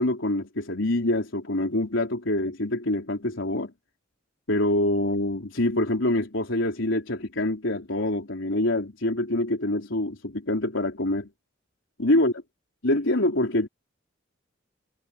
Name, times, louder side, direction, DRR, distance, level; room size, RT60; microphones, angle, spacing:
voice 1, 0.0-3.7 4.5-11.3 12.0-12.3 12.8-13.7, left 1 dB, 85° left, 3.7 m, -25 dB
head